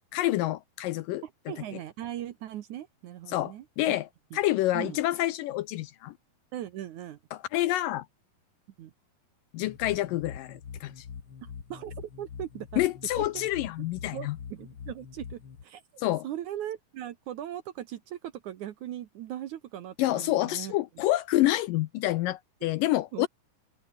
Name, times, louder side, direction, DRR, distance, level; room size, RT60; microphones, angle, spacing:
voice 1, 0.1-1.2 3.3-6.1 7.3-8.1 9.5-11.1 12.8-14.4 16.0-16.3 20.0-23.3, left 15 dB, 80° left, 2.1 m, -28 dB
voice 2, 1.2-3.9 4.3-4.4 4.7-5.0 6.5-7.2 8.8-8.9 11.4-12.8 13.2-13.3 14.1-20.7 23.1-23.3, right 12 dB, 65° right, 2.1 m, -39 dB
sound 1, 9.6-15.6, left 6 dB, 40° left, 2.5 m, -44 dB
omnidirectional pair, 4.4 m